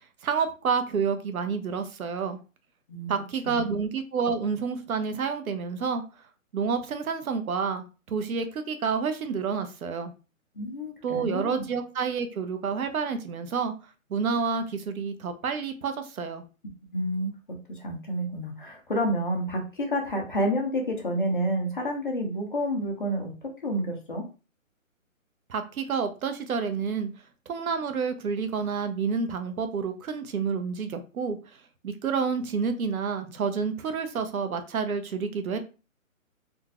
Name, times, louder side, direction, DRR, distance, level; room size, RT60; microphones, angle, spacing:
voice 1, 0.2-2.4 3.1-6.0 6.5-10.1 11.0-13.7 14.1-16.4 25.5-27.1 27.5-31.4 31.8-35.6, right 5 dB, 85° right, 8 dB, 0.8 m, -29 dB
voice 2, 10.6-11.6 16.9-17.3 17.7-24.2, equal, 40° left, 2 dB, 0.6 m, -29 dB
3.9 x 2.3 x 2.3 m, 0.33 s
hypercardioid pair, 175°, 41 cm